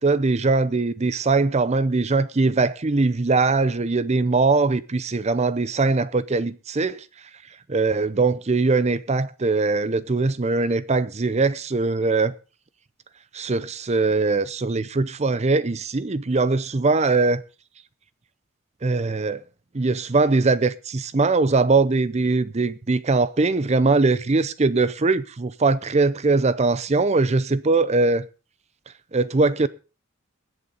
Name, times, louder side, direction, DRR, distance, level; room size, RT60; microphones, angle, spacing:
voice 1, 0.0-7.1 7.7-12.3 13.3-17.4 18.8-19.4 19.7-28.3 29.1-29.7, right 3 dB, 30° right, 0.5 m, -21 dB
21.0 x 8.2 x 4.0 m
head